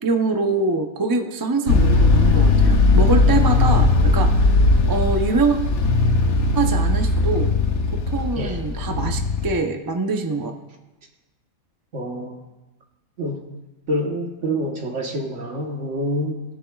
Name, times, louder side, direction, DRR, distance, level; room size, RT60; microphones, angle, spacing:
voice 1, 0.0-4.6 4.9-5.6 6.5-7.5 8.1-10.5, right 3 dB, 25° right, 4 dB, 0.5 m, -24 dB
sound 1, 1.7-9.6, left 3 dB, 85° left, 1.4 m, -18 dB
voice 2, 11.9-12.4 13.2-13.4 13.9-16.4, equal, 60° right, 1 dB, 1.5 m, -27 dB
20.5 x 7.0 x 2.4 m, 1.1 s
omnidirectional pair, 1.5 m